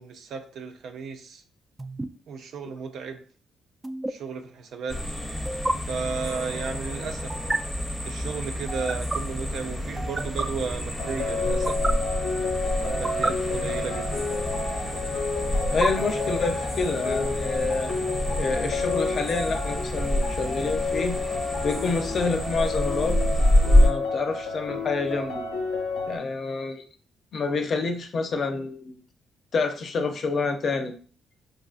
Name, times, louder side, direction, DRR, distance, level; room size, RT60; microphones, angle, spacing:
voice 1, 0.0-1.4 2.3-3.2 4.1-5.0 5.9-7.4 8.0-11.8 12.8-14.3, right 5 dB, 70° right, 6 dB, 0.5 m, -34 dB
sound 1, 1.8-2.1 3.8-4.1 5.4-5.7 7.3-7.6 8.7-9.2 10.0-10.5 11.5-11.9 12.8-13.3 14.3-14.9 15.6-16.5, right 2 dB, 20° right, 0.3 m, -30 dB
sound 2, 4.9-23.9, left 1 dB, 5° left, 0.7 m, -27 dB
sound 3, 11.0-26.2, left 4 dB, 90° left, 0.7 m, -30 dB
voice 2, 15.7-17.9 18.4-21.2 21.6-23.2 23.6-25.4 26.1-26.9 27.3-29.0 29.5-30.9, left 4 dB, 50° left, 6 dB, 0.5 m, -28 dB
4.8 x 2.4 x 2.4 m, 0.42 s
cardioid pair, 90°, 0 cm